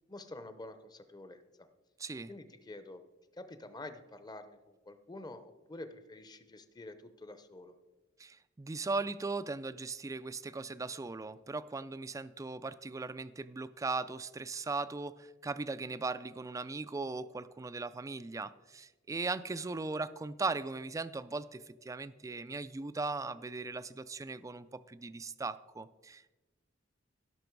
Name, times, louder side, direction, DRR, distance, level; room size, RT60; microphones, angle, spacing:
voice 1, 0.1-1.4 2.3-3.0 3.3-7.8, left 2 dB, 20° left, 10 dB, 0.7 m, -48 dB
voice 2, 8.2-26.3, right 3 dB, 15° right, 14 dB, 0.3 m, -38 dB
16.5 x 6.0 x 4.6 m, 1.2 s
head